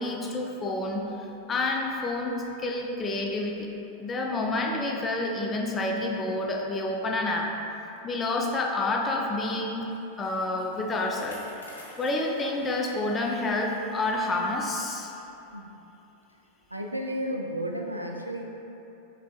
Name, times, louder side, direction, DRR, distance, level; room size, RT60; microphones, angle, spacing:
voice 1, 0.0-3.7 4.0-7.6 8.0-9.9 10.2-11.5 12.0-15.1, left 2 dB, 20° left, 1 dB, 0.5 m, -29 dB
Bicycle, 9.7-13.6 14.0-14.1 14.9-15.0, left 1 dB, 75° left, 0.7 m, -50 dB
voice 2, 16.7-18.4, equal, 85° right, 1 dB, 0.3 m, -32 dB
5.6 x 3.4 x 2.4 m, 3.0 s
figure-of-eight pair, 90°, 0 cm